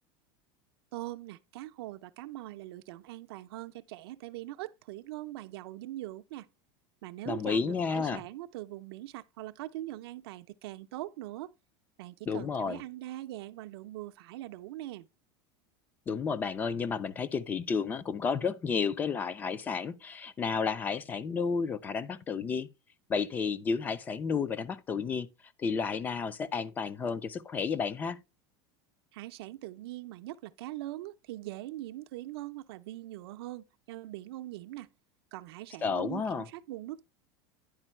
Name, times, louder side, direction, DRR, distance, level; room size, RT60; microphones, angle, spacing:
voice 1, 0.9-6.5 7.0-11.5 12.0-15.1 29.1-34.9 35.3-37.0, right 16 dB, 70° right, 0.5 m, -42 dB
voice 2, 7.3-8.2 12.3-12.8 16.1-22.7 23.1-25.3 25.6-28.2 35.8-36.5, left 5 dB, 15° left, 0.3 m, -31 dB
10.0 x 4.4 x 4.2 m
supercardioid pair, 180°, 13 cm